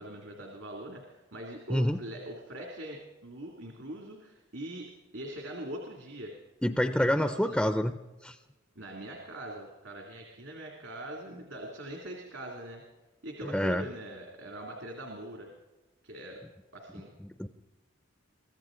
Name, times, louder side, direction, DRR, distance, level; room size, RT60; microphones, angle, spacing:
voice 1, 0.0-6.3 7.0-7.6 8.8-12.8 13.2-15.5 16.0-16.4 16.7-17.1, right 1 dB, 70° right, 0 dB, 2.4 m, -42 dB
voice 2, 6.6-7.9 8.2-8.4 13.5-13.8 17.2-17.5, equal, 5° left, 8 dB, 0.4 m, -27 dB
23.5 x 15.0 x 3.8 m, 1.1 s
head